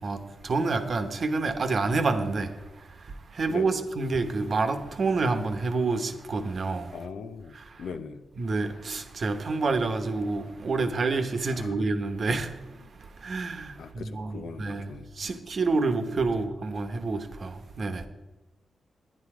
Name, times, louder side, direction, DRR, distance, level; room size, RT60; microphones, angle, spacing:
voice 1, 0.0-7.0 7.5-7.8 8.4-18.1, right 3 dB, 55° right, 1.1 m, -28 dB
voice 2, 3.5-3.8 6.9-8.3 11.5-11.9 13.8-15.3, left 5 dB, 80° left, 0.7 m, -40 dB
10.0 x 9.8 x 4.9 m
cardioid pair, 65°, 0 cm